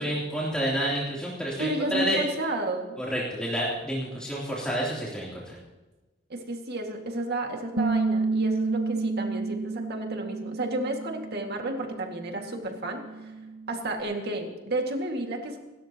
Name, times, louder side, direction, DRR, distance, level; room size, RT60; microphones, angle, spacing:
voice 1, 0.0-2.2 3.0-5.6, equal, 5° left, -6 dB, 3.4 m, -29 dB
voice 2, 1.6-3.0 6.3-13.3 13.7-15.6, right 1 dB, 50° right, 2 dB, 2.2 m, -32 dB
Bass guitar, 7.8-14.0, right 3 dB, 80° right, 1.9 m, -31 dB
28.5 x 13.5 x 3.0 m, 1.2 s
head